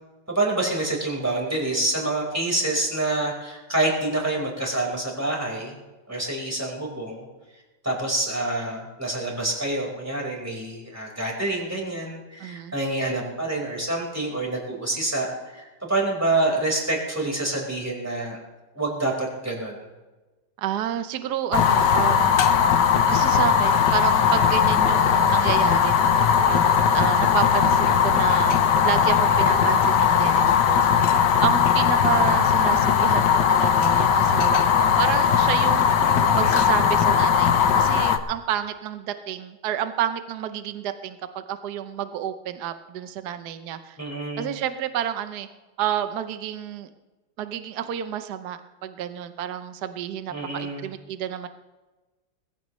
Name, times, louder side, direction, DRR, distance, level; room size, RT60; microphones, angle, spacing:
voice 1, 0.3-5.7 6.1-7.3 7.8-18.4 18.7-19.9 36.0-36.4 44.0-44.5 50.3-50.9, right 2 dB, 10° right, -2 dB, 4.5 m, -27 dB
voice 2, 12.4-12.7 20.6-22.3 23.1-26.2 26.5-36.1 36.3-44.0 44.4-45.5 45.8-46.9 47.4-51.5, right 10 dB, 65° right, 9 dB, 1.3 m, -30 dB
Fire, 21.5-38.2, left 7 dB, 70° left, 1.5 m, -19 dB
21.0 x 15.5 x 3.2 m, 1.2 s
omnidirectional pair, 2.0 m